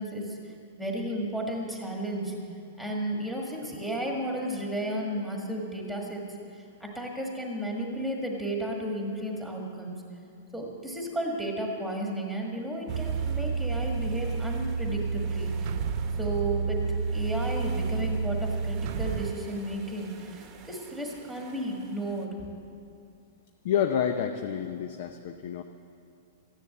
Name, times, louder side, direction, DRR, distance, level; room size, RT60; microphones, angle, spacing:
voice 1, 0.0-2.4 2.8-10.0 10.5-15.7 16.2-22.4, right 1 dB, ahead, 0 dB, 1.6 m, -33 dB
sound 1, 12.9-22.3, right 5 dB, 20° right, 1.1 m, -51 dB
sound 2, 12.9-19.3, right 5 dB, 40° right, 0.4 m, -30 dB
voice 2, 23.6-25.6, left 8 dB, 45° left, 7 dB, 0.6 m, -28 dB
14.5 x 10.5 x 7.8 m, 2.5 s
supercardioid pair, 175°, 0 cm